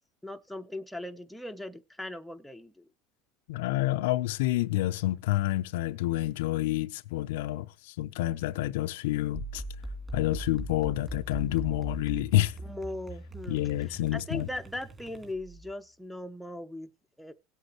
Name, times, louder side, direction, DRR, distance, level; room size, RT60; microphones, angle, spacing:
voice 1, 0.2-2.9 12.6-16.9 17.2-17.3, left 1 dB, ahead, 0.8 m, -39 dB
voice 2, 3.5-9.6 10.1-12.5 13.5-14.5, left 15 dB, 85° left, 0.6 m, -28 dB
sound 1, 9.3-15.7, right 1 dB, 15° right, 2.8 m, -40 dB
18.0 x 8.1 x 3.1 m
supercardioid pair, 150°, 0 cm